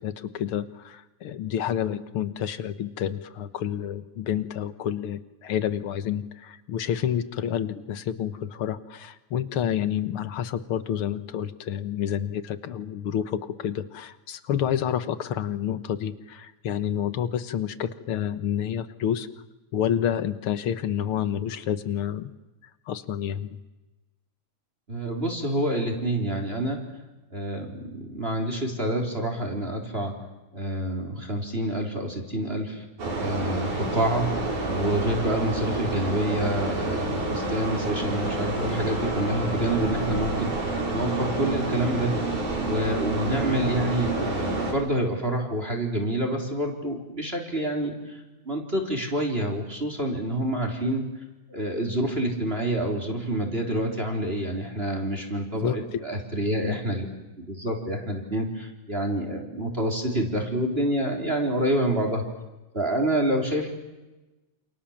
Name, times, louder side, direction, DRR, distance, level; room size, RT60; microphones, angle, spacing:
voice 1, 0.0-19.3 19.7-22.3 22.9-23.6 55.6-55.8 56.6-56.8, left 9 dB, 55° left, 13 dB, 1.7 m, -29 dB
voice 2, 24.9-26.8 27.3-30.1 30.5-32.9 33.1-42.2 42.6-51.0 51.5-57.1 57.4-62.2 62.7-63.7, right 1 dB, 20° right, 3 dB, 3.8 m, -27 dB
sound 1, 33.0-44.7, right 2 dB, 80° right, 6.9 m, -28 dB
29.0 x 28.5 x 7.3 m, 1.1 s
omnidirectional pair, 3.4 m